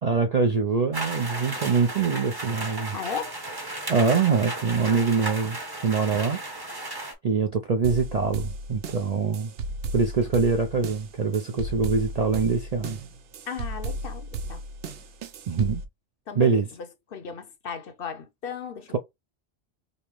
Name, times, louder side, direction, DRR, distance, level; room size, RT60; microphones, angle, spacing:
voice 1, 0.0-3.0 3.9-5.6 5.8-6.4 7.2-9.5 9.9-13.0 15.5-15.8 16.4-16.7, right 5 dB, 55° right, 0.4 m, -24 dB
sound 1, 0.9-7.1, right 2 dB, 20° right, 0.8 m, -34 dB
voice 2, 2.9-3.3 13.5-14.6 16.3-16.6 17.1-19.0, left 6 dB, 60° left, 0.8 m, -35 dB
sound 2, 7.8-15.9, right 2 dB, 80° right, 1.0 m, -35 dB
5.2 x 2.0 x 3.0 m
omnidirectional pair, 1.2 m